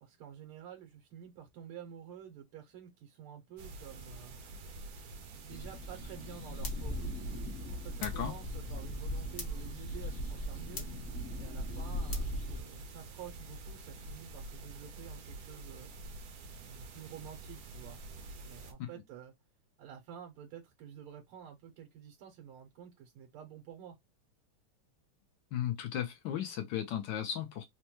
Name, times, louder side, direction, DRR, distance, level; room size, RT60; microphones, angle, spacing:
voice 1, 0.0-4.4 5.4-7.0 7.6-11.0 11.4-15.9 16.6-18.0 18.5-19.3 19.8-24.0, right 9 dB, 85° right, 1.7 m, -50 dB
sound 1, 3.6-18.7, right 2 dB, 65° right, 0.9 m, -48 dB
sound 2, 5.5-12.6, equal, 45° left, 0.9 m, -39 dB
voice 2, 8.0-8.3 18.8-18.9 25.5-27.7, left 10 dB, 70° left, 1.1 m, -35 dB
4.3 x 2.2 x 2.9 m
omnidirectional pair, 2.3 m